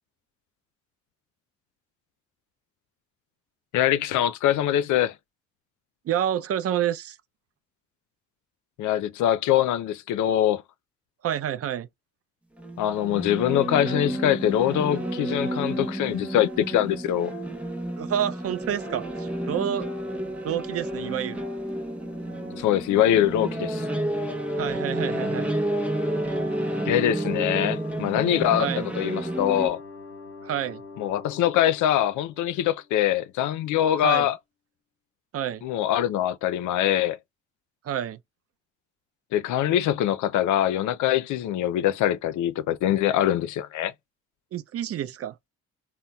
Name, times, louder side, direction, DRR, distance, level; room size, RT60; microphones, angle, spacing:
voice 1, 3.7-5.1 8.8-10.6 12.8-17.3 22.6-23.9 26.8-29.8 31.0-34.4 35.6-37.2 39.3-43.9, left 11 dB, 75° left, 0.5 m, -23 dB
voice 2, 6.1-7.2 11.2-11.9 18.0-19.9 20.4-21.5 24.6-25.5 28.6-28.9 30.4-30.8 34.0-34.3 35.3-35.6 37.8-38.2 44.5-45.4, right 10 dB, 50° right, 0.5 m, -28 dB
sound 1, 12.6-29.7, right 1 dB, 5° right, 0.8 m, -30 dB
sound 2, 21.7-33.1, left 4 dB, 45° left, 1.1 m, -43 dB
3.9 x 2.0 x 2.2 m
cardioid pair, 90°, 30 cm